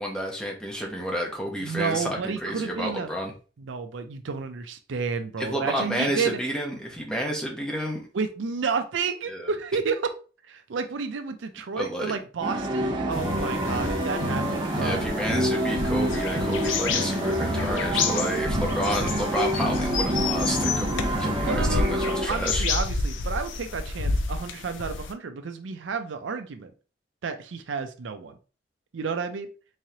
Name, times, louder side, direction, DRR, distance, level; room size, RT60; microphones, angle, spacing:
voice 1, 0.0-3.3 5.4-8.1 9.3-9.5 11.8-12.1 14.7-22.7, equal, 5° left, -1 dB, 0.9 m, -30 dB
voice 2, 1.6-3.1 3.6-6.4 8.1-10.1 10.5-15.0 21.4-26.7 27.2-28.3 28.9-29.5, right 5 dB, 85° right, 8 dB, 0.5 m, -31 dB
sound 1, 12.4-22.3, equal, 25° right, 0.7 m, -27 dB
sound 2, 13.1-25.1, left 4 dB, 90° left, 0.5 m, -30 dB
3.6 x 3.1 x 2.8 m, 0.36 s
head